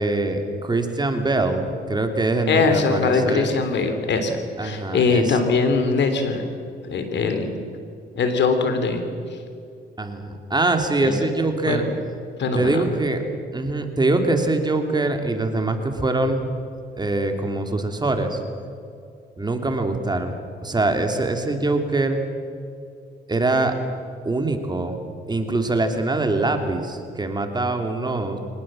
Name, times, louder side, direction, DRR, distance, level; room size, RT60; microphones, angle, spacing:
voice 1, 0.0-3.5 4.6-5.4 10.0-11.9 12.5-13.2 13.5-16.5 17.0-18.4 19.4-20.4 20.6-22.2 23.3-23.7 24.2-25.0 25.3-28.4, right 2 dB, 20° right, 5 dB, 2.8 m, -23 dB
voice 2, 2.5-6.4 6.8-7.6 8.1-9.0 9.3-9.4 11.0-11.1 11.6-11.9 12.4-12.8, left 4 dB, 65° left, 7 dB, 3.3 m, -22 dB
24.0 x 19.5 x 7.6 m, 2.5 s
cardioid pair, 90°, 20 cm